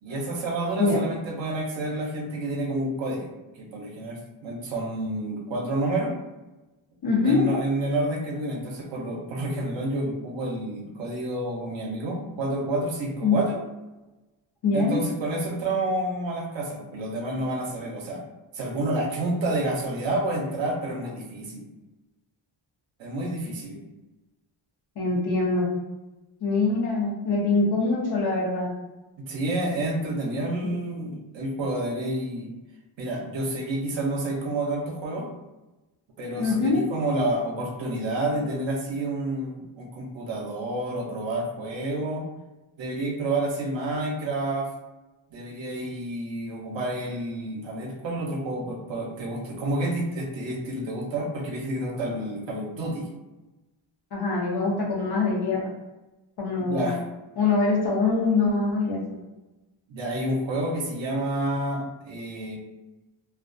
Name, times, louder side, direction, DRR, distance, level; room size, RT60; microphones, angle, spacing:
voice 1, 0.0-3.3 3.6-6.1 7.2-13.6 14.7-18.2 18.5-21.7 23.0-23.8 29.2-32.5 33.0-35.3 36.2-42.2 42.8-44.7 45.3-53.1 56.6-57.0 59.9-62.6, right 1 dB, 65° right, 0 dB, 0.6 m, -29 dB
voice 2, 7.0-7.6 13.2-13.4 14.6-15.0 25.0-25.7 26.4-28.7 30.6-30.8 36.4-36.8 54.1-55.7 56.4-56.9 57.4-59.2, left 3 dB, 50° left, -3 dB, 0.7 m, -24 dB
2.3 x 2.2 x 2.5 m, 1.1 s
wide cardioid pair, 160°, 49 cm